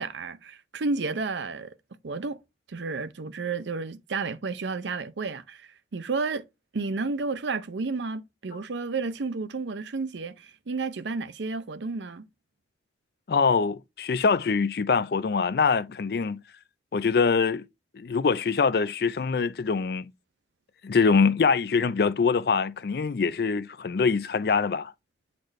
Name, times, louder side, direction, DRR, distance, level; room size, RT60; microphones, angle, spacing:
voice 1, 0.0-1.8 2.0-2.4 2.7-6.4 6.7-12.3, right 4 dB, 80° right, 0.6 m, -31 dB
voice 2, 13.3-16.4 16.9-17.7 17.9-20.1 20.8-24.9, left 5 dB, 55° left, 0.4 m, -24 dB
7.8 x 4.2 x 3.2 m
head